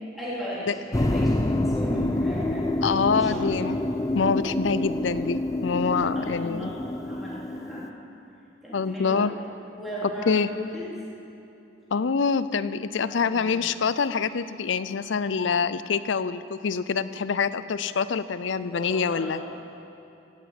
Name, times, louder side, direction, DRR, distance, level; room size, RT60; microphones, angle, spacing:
voice 1, 0.1-2.7 3.1-3.6 6.1-8.0 8.6-9.3 9.8-10.8 13.0-13.6 18.7-19.5, equal, ahead, -9 dB, 3.7 m, -36 dB
sound 1, 0.9-7.9, left 1 dB, 20° left, 0.5 m, -27 dB
voice 2, 2.8-3.8 4.1-6.7 8.7-9.3 10.0-10.5 11.9-19.4, left 5 dB, 75° left, 14 dB, 0.5 m, -25 dB
17.0 x 7.9 x 8.3 m, 2.8 s
head